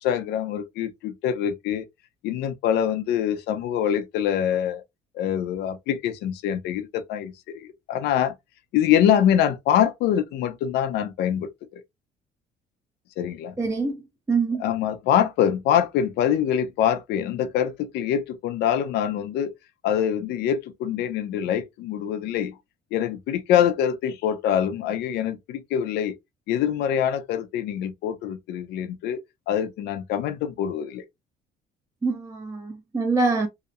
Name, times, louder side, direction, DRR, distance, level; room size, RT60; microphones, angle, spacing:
voice 1, 0.0-1.9 2.2-4.8 5.2-8.4 8.7-11.8 13.2-13.5 14.6-19.5 19.8-22.5 22.9-26.2 26.5-29.2 29.5-31.0, left 9 dB, 80° left, 0.6 m, -24 dB
voice 2, 13.6-14.0 14.3-14.7 32.0-33.5, right 4 dB, 20° right, 0.5 m, -24 dB
2.8 x 2.1 x 2.4 m
cardioid pair, 110°, 17 cm